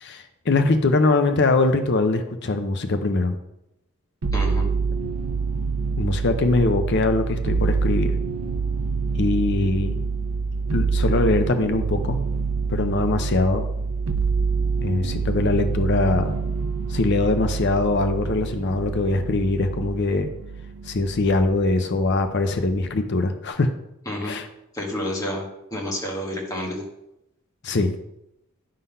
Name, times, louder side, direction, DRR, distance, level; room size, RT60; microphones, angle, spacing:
voice 1, 0.0-3.4 6.0-8.2 9.2-10.0 10.7-12.2 12.7-13.7 14.8-16.3 16.9-20.3 20.8-23.7 24.2-24.5 27.6-28.0, left 2 dB, 50° left, 8 dB, 0.6 m, -22 dB
sound 1, 4.2-21.6 22.0-22.8, right 4 dB, 70° right, 0.6 m, -26 dB
voice 2, 4.3-4.7 24.0-24.4 24.7-26.8, left 1 dB, 15° left, -2 dB, 1.5 m, -29 dB
9.7 x 3.9 x 5.4 m, 0.84 s
head